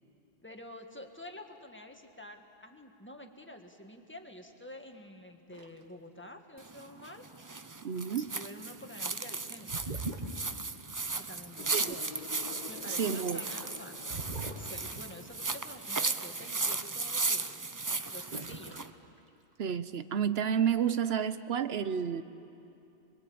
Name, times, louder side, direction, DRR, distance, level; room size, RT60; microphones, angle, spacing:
voice 1, 0.4-7.3 8.1-9.8 11.2-12.1 12.7-14.2 14.5-17.5 18.1-18.8, left 1 dB, 10° left, 4 dB, 1.7 m, -49 dB
sound 1, 5.5-5.8 9.7-10.7 14.1-15.2 17.8-18.0 18.3-18.9 19.2-19.8, right 2 dB, 45° right, 1.6 m, -40 dB
sound 2, 6.6-18.9, right 3 dB, 25° right, 0.6 m, -36 dB
voice 2, 7.8-8.3 11.7-12.0 13.0-13.4 19.6-22.2, right 8 dB, 85° right, 12 dB, 1.1 m, -30 dB
sound 3, 11.6-15.9, left 6 dB, 55° left, 0.9 m, -49 dB
29.0 x 22.0 x 8.6 m, 2.8 s
omnidirectional pair, 1.0 m